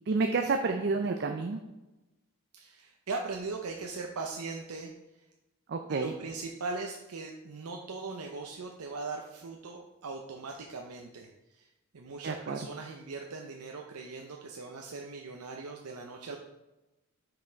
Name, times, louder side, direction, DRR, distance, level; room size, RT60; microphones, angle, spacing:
voice 1, 0.1-1.6 5.7-6.1 12.2-12.6, right 4 dB, 50° right, 4 dB, 0.5 m, -29 dB
voice 2, 2.5-4.9 5.9-16.4, right 3 dB, 85° right, 1 dB, 0.6 m, -40 dB
5.9 x 5.2 x 4.5 m, 1.0 s
head